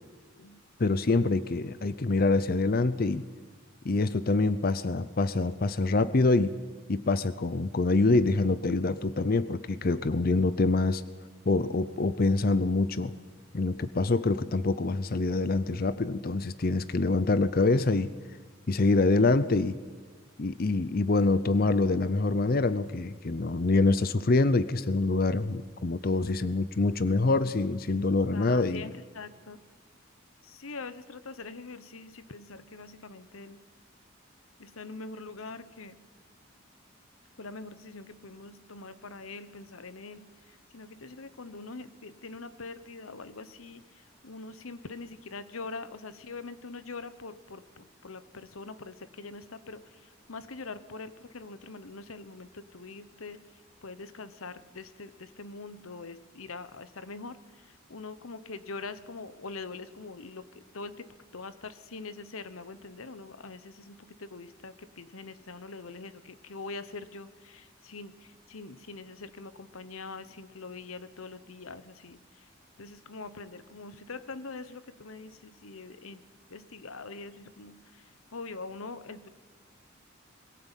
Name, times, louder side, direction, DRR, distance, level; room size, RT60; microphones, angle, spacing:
voice 1, 0.8-3.3 3.8-6.6 6.9-11.0 11.5-13.1 13.5-18.1 18.7-19.8 20.4-28.9, left 3 dB, 45° left, 15 dB, 0.6 m, -25 dB
voice 2, 28.3-29.6 30.4-33.6 34.6-36.0 37.4-72.5 72.8-76.2 76.5-79.3, left 3 dB, 90° left, 14 dB, 1.1 m, -43 dB
21.5 x 17.0 x 9.1 m, 1.4 s
head